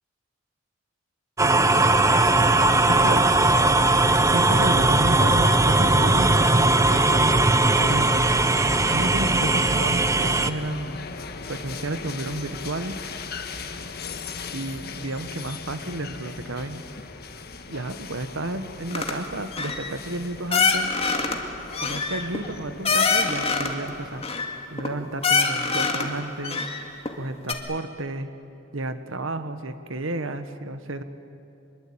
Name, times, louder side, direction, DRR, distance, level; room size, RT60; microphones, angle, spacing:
sound 1, 1.4-10.5, right 2 dB, 15° right, 0.8 m, -19 dB
voice 1, 2.9-3.2 4.3-7.3 7.8-8.3 8.9-11.0 11.5-13.0 14.5-16.8 17.7-20.9 21.8-24.2 24.7-26.6 27.1-28.3 28.7-31.0, right 2 dB, 75° right, 10 dB, 1.4 m, -31 dB
sound 2, 7.8-24.2, left 4 dB, 50° left, 1.5 m, -39 dB
sound 3, 18.9-19.1 19.5-19.9 20.5-21.4 21.7-23.8 24.2-24.9 25.2-26.1 26.4-27.1 27.5-27.6, left 5 dB, 30° left, 2.1 m, -24 dB
25.0 x 22.0 x 8.8 m, 2.7 s
head